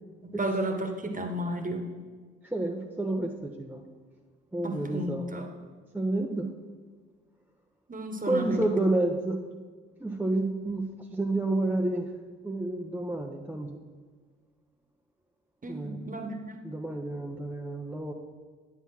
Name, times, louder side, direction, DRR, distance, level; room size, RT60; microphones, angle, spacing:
voice 1, 0.2-1.9 4.6-5.5 7.9-8.7 15.6-16.6, right 1 dB, 20° right, 6 dB, 1.2 m, -33 dB
voice 2, 2.4-3.8 4.5-5.3 5.9-6.5 8.3-9.5 10.0-10.8 11.1-12.1 12.4-13.8 15.7-16.1 16.6-18.1, right 2 dB, 5° right, 2 dB, 0.6 m, -30 dB
9.1 x 3.9 x 5.9 m, 1.5 s
figure-of-eight pair, 50°, 37 cm